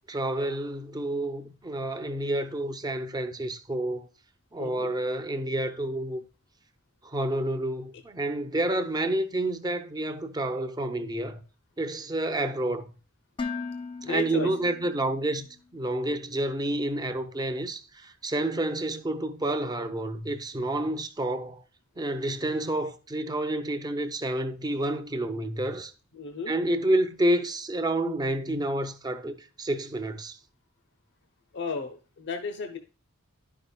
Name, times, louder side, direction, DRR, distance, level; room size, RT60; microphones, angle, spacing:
voice 1, 0.1-4.1 4.5-6.2 7.0-11.4 11.8-13.0 14.0-21.6 22.0-25.9 26.5-30.4, right 1 dB, 20° right, 0.6 m, -29 dB
voice 2, 4.6-5.0 14.0-14.5 26.1-26.5 31.5-32.8, left 4 dB, 55° left, 0.7 m, -34 dB
Dishes pots and pans, 13.4-15.4, left 4 dB, 25° left, 0.4 m, -37 dB
11.0 x 5.5 x 2.2 m
head